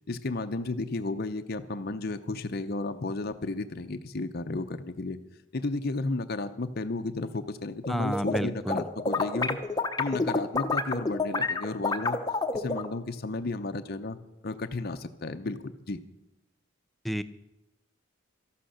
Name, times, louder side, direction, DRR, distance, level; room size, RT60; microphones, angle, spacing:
voice 1, 0.0-5.2 5.5-9.6 10.0-12.2 12.5-14.2 14.4-16.0, left 2 dB, 50° left, 8 dB, 0.7 m, -33 dB
sound 1, 7.8-8.4 8.7-12.9, left 3 dB, 20° left, 0.9 m, -28 dB
voice 2, 7.9-8.8 17.0-17.2, equal, ahead, 12 dB, 0.5 m, -30 dB
13.5 x 11.5 x 6.5 m, 0.94 s
head